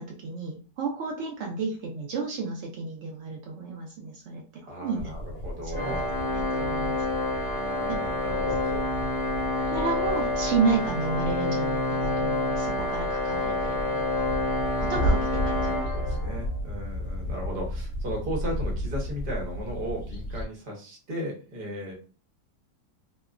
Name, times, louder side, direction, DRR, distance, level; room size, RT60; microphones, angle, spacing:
voice 1, 0.0-5.1 5.6-6.0 6.3-7.0 7.9-8.1 8.6-8.8 9.7-14.2 14.8-16.0, right 4 dB, 80° right, -1 dB, 0.6 m, -32 dB
voice 2, 4.7-6.0 7.5-8.8 15.6-21.9, equal, 45° right, -1 dB, 0.7 m, -36 dB
sound 1, 5.0-20.4, equal, 80° left, 0.5 m, -34 dB
Organ, 5.7-16.5, left 2 dB, 15° left, 1.0 m, -28 dB
2.9 x 2.2 x 2.4 m, 0.38 s
omnidirectional pair, 1.9 m